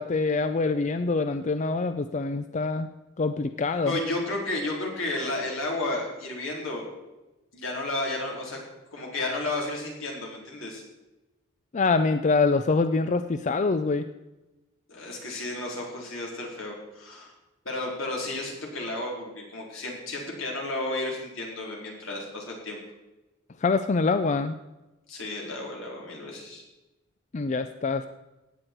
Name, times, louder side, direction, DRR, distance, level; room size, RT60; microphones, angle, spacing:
voice 1, 0.0-2.9 3.2-4.0 11.7-14.1 23.6-24.6 27.3-28.0, left 3 dB, 35° left, 10 dB, 0.4 m, -25 dB
voice 2, 3.9-6.8 7.5-8.6 8.9-10.8 14.9-17.3 17.6-22.8 25.1-26.6, left 2 dB, 80° left, -2 dB, 4.0 m, -32 dB
16.5 x 9.5 x 4.6 m, 1.0 s
head